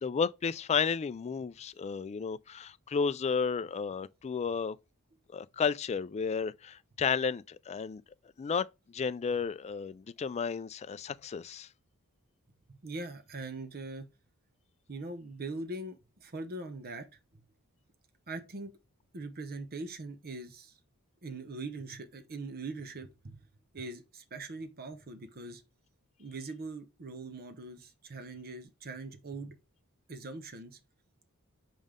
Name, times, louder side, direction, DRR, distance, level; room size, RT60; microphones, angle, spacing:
voice 1, 0.0-4.8 5.3-8.0 8.4-11.7, left 6 dB, 30° left, 0.3 m, -32 dB
voice 2, 12.8-14.1 14.9-17.1 17.3-17.4 18.3-18.7 19.1-20.8 21.2-23.4 23.7-25.6 26.2-29.6 30.1-30.8, right 2 dB, 45° right, 0.8 m, -42 dB
5.4 x 5.2 x 3.6 m
head